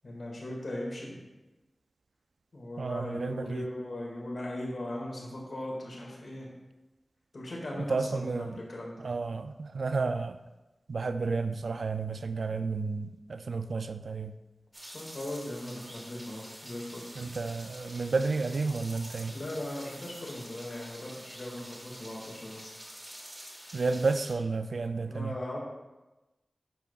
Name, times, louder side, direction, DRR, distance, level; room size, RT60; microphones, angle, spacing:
voice 1, 0.0-1.2 2.5-6.5 7.3-9.0 14.9-17.2 19.3-22.7 25.1-25.6, left 1 dB, 70° left, -3 dB, 2.0 m, -38 dB
voice 2, 2.8-3.7 7.7-8.6 9.0-10.4 10.9-14.3 17.2-19.4 23.7-25.3, right 4 dB, 85° right, 10 dB, 0.3 m, -31 dB
sound 1, 14.7-24.3, equal, 25° right, 2.0 m, -47 dB
10.5 x 4.9 x 2.4 m, 1.1 s
wide cardioid pair, 50°, 0 cm